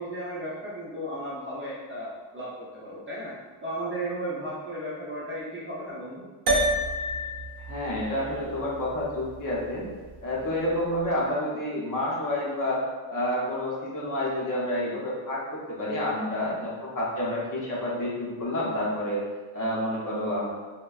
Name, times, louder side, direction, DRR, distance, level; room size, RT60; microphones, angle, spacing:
voice 1, 0.0-3.3 3.6-6.3, right 1 dB, 25° right, -8 dB, 0.5 m, -35 dB
sound 1, 6.5-11.0, right 1 dB, 60° right, 0.7 m, -31 dB
voice 2, 7.7-9.8 10.2-12.8 13.1-19.2 19.5-20.5, left 1 dB, 40° left, -5 dB, 0.6 m, -29 dB
3.3 x 2.1 x 2.3 m, 1.3 s
wide cardioid pair, 160°, 48 cm